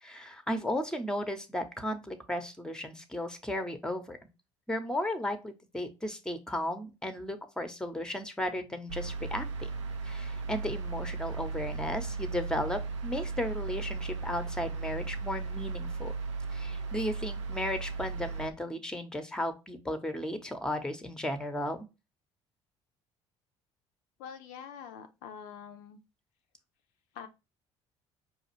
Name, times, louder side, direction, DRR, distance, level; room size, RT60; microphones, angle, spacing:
voice 1, 0.0-4.2 4.7-9.7 10.0-16.1 16.5-21.9, left 1 dB, 5° left, 0.7 m, -35 dB
sound 1, 8.9-18.5, right 4 dB, 85° right, 0.5 m, -36 dB
voice 2, 24.2-26.0 27.1-27.3, left 7 dB, 70° left, 0.5 m, -45 dB
5.0 x 2.4 x 3.0 m
hypercardioid pair, 55°, 15 cm